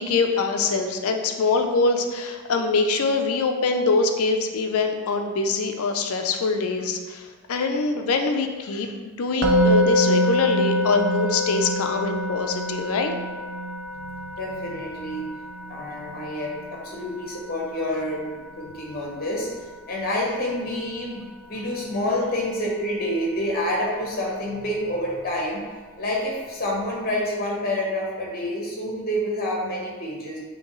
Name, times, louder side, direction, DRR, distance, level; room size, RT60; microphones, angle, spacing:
voice 1, 0.0-13.1, left 3 dB, 75° left, 5 dB, 0.5 m, -24 dB
Musical instrument, 9.4-20.5, equal, 55° right, 0.5 m, -26 dB
voice 2, 14.1-15.2 15.7-19.5 19.9-25.6 26.0-30.4, left 1 dB, 40° left, -2 dB, 0.9 m, -28 dB
5.3 x 2.8 x 3.0 m, 1.4 s
head